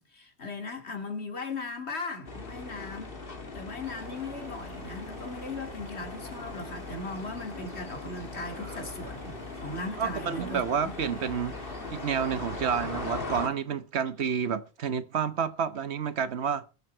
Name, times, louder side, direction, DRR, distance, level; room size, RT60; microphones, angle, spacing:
voice 1, 0.0-3.1 3.5-10.9, left 3 dB, 85° left, 2.8 m, -38 dB
sound 1, 2.3-13.5, left 3 dB, 60° left, 2.2 m, -40 dB
sound 2, 3.8-13.1, right 1 dB, 65° right, 6.7 m, -47 dB
voice 2, 10.0-16.6, right 7 dB, 85° right, 1.3 m, -30 dB
21.5 x 7.7 x 4.5 m
omnidirectional pair, 1.1 m